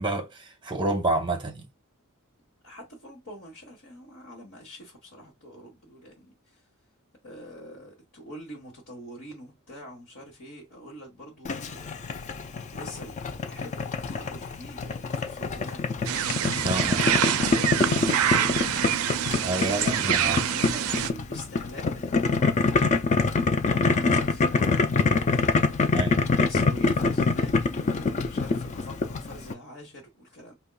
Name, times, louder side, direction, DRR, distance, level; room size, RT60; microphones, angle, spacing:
voice 1, 0.0-1.7 16.6-17.1 19.4-20.4 25.9-26.2, right 2 dB, 20° right, 0.7 m, -29 dB
voice 2, 2.6-6.6 7.2-12.1 12.7-13.2 13.5-15.9 17.4-18.8 19.3-26.0 26.3-30.5, equal, 60° left, 1.3 m, -44 dB
Boiling, 11.4-29.5, left 4 dB, 30° left, 0.3 m, -25 dB
sound 1, 16.0-21.1, right 10 dB, 70° right, 0.4 m, -26 dB
5.1 x 2.3 x 2.2 m
head